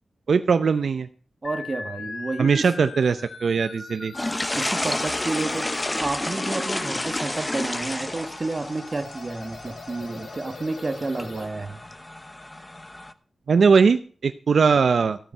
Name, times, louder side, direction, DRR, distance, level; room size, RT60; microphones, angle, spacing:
voice 1, 0.3-1.1 2.4-4.1 13.5-15.3, right 5 dB, 70° right, 11 dB, 0.6 m, -20 dB
sound 1, 1.4-11.4, left 4 dB, 85° left, 2.7 m, -40 dB
voice 2, 1.4-2.7 4.5-5.7 6.0-11.8, right 3 dB, 30° right, 8 dB, 1.4 m, -30 dB
sound 2, 4.1-13.1, left 1 dB, 15° left, 0.8 m, -31 dB
15.0 x 9.0 x 5.5 m, 0.42 s
wide cardioid pair, 170°, 0 cm